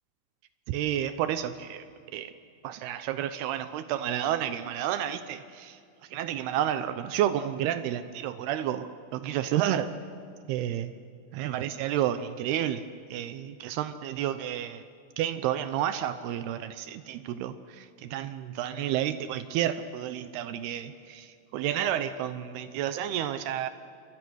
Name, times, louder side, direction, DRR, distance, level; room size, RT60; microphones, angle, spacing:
voice 1, 0.7-1.8 2.1-2.3 2.6-5.8 6.1-9.9 10.5-10.9 11.3-12.8 13.1-14.8 15.2-23.7, right 11 dB, 85° right, 11 dB, 2.3 m, -30 dB
27.5 x 24.0 x 6.3 m, 2.4 s
omnidirectional pair, 5.5 m